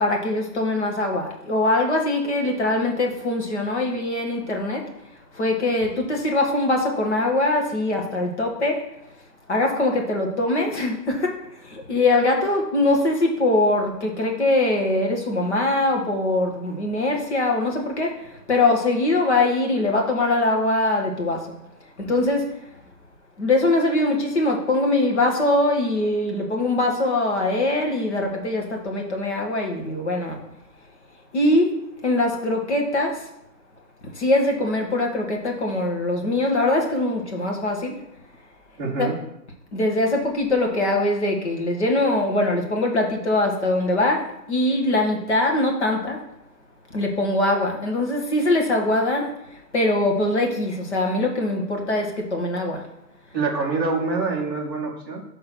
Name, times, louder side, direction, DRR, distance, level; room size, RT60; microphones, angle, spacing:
voice 1, 0.0-4.8 5.4-8.8 9.5-11.3 11.9-18.1 18.5-21.4 22.1-22.4 23.4-30.4 31.3-31.7 32.0-33.1 34.2-37.9 39.0-39.1 39.7-44.2 44.5-46.2 46.9-49.3 49.7-52.1 52.3-52.8, left 2 dB, 40° left, 1 dB, 1.5 m, -22 dB
voice 2, 38.8-39.1 53.3-55.2, right 4 dB, 15° right, -7 dB, 0.8 m, -25 dB
6.3 x 3.9 x 5.9 m, 0.81 s
hypercardioid pair, 170°, 50 cm